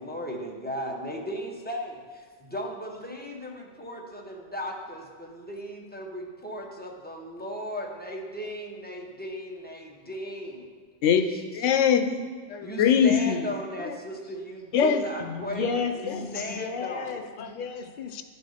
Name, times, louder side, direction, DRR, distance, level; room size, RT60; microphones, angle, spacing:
voice 1, 0.0-10.7 11.3-11.5 12.6-15.7 16.3-17.3, equal, 10° left, -1 dB, 0.7 m, -36 dB
voice 2, 11.0-13.4 14.7-15.0 16.2-16.3 17.4-17.5 18.1-18.2, left 7 dB, 80° left, 8 dB, 1.0 m, -23 dB
voice 3, 15.2-18.2, left 5 dB, 60° left, 6 dB, 0.5 m, -33 dB
10.5 x 4.3 x 4.9 m, 1.5 s
omnidirectional pair, 1.2 m